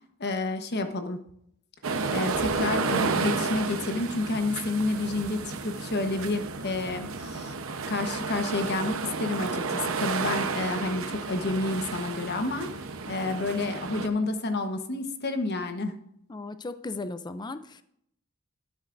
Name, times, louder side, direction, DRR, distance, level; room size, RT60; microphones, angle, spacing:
voice 1, 0.2-1.2 2.1-7.5 7.9-12.7 13.1-16.0, left 2 dB, 50° left, 7 dB, 1.1 m, -29 dB
sound 1, 1.8-14.1, right 4 dB, 70° right, 0.9 m, -31 dB
voice 2, 16.3-17.8, left 3 dB, 20° left, 11 dB, 0.4 m, -36 dB
12.5 x 10.5 x 2.6 m, 0.73 s
head